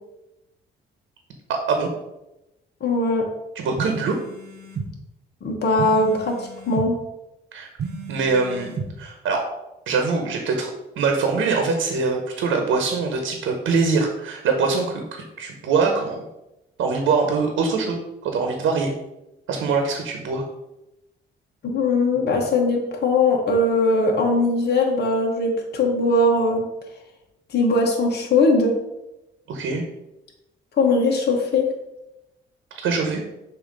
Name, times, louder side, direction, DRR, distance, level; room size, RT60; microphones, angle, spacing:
voice 1, 1.5-1.9 3.5-4.2 7.5-7.7 8.1-8.7 9.0-9.4 9.9-10.7 11.0-16.2 16.8-18.9 19.5-20.5 29.5-29.8 32.8-33.2, right 4 dB, 80° right, 3 dB, 1.0 m, -23 dB
voice 2, 2.8-3.2 5.4-7.0 21.6-26.7 27.5-28.7 30.8-31.7, left 2 dB, 55° left, 0 dB, 1.3 m, -20 dB
sound 1, 3.8-4.9 5.8-6.9 7.8-8.9, right 5 dB, 55° right, 0.9 m, -33 dB
6.8 x 2.9 x 5.3 m, 0.93 s
cardioid pair, 90°, 20 cm